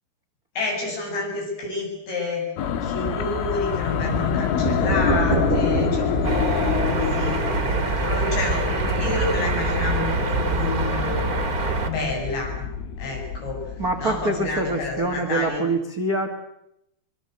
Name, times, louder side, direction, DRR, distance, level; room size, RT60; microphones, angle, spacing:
voice 1, 0.6-2.5 2.8-7.4 8.0-11.2 11.9-12.7 13.0-13.7 14.0-15.6, left 3 dB, 65° left, 0 dB, 10.5 m, -29 dB
sound 1, 2.6-15.2, left 8 dB, 90° left, 4.0 m, -27 dB
sound 2, 4.6-8.4, right 7 dB, 60° right, 2.4 m, -28 dB
sound 3, 6.2-11.9, right 5 dB, 30° right, 1.7 m, -25 dB
voice 2, 13.8-16.3, right 2 dB, 75° right, 6 dB, 0.8 m, -25 dB
25.0 x 24.0 x 8.0 m, 0.79 s
omnidirectional pair, 5.4 m